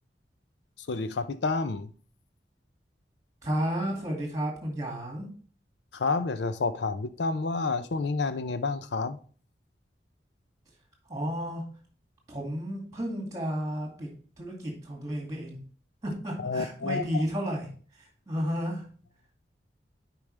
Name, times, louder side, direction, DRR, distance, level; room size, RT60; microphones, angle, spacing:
voice 1, 0.8-1.9 5.9-9.2 16.4-17.2, left 3 dB, 80° left, 0.6 m, -29 dB
voice 2, 3.4-5.3 11.1-11.6 12.3-14.1 14.4-15.6 16.0-18.9, equal, 20° right, 2.3 m, -32 dB
8.5 x 4.9 x 3.3 m
head